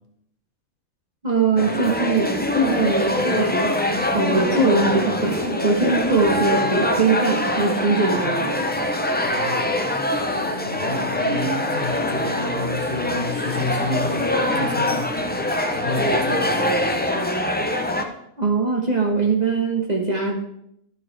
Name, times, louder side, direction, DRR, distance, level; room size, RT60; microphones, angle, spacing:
voice 1, 1.2-3.7 4.1-8.7 18.4-20.4, right 3 dB, 30° right, 0 dB, 1.3 m, -21 dB
sound 1, 1.6-18.0, left 1 dB, 15° left, 0.4 m, -23 dB
voice 2, 9.2-9.8 10.7-15.2 15.7-17.1, left 2 dB, 40° left, 2 dB, 1.2 m, -29 dB
12.0 x 7.1 x 3.4 m, 0.74 s
omnidirectional pair, 1.5 m